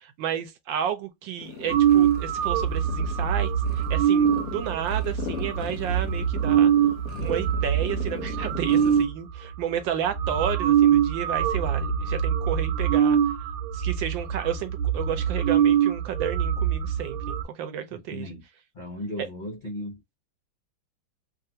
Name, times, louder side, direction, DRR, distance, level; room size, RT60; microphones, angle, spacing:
voice 1, 0.0-3.5 3.8-6.7 7.2-13.2 13.7-18.3 19.2-19.3, right 9 dB, 75° right, 1.2 m, -32 dB
sound 1, 1.4-9.1, left 8 dB, 65° left, 0.9 m, -39 dB
sound 2, 1.7-9.1 9.8-9.9 10.1-17.4, right 9 dB, 90° right, 1.5 m, -23 dB
voice 2, 17.9-18.4 18.7-20.2, left 1 dB, 85° left, 0.4 m, -36 dB
3.3 x 2.5 x 2.7 m
omnidirectional pair, 2.3 m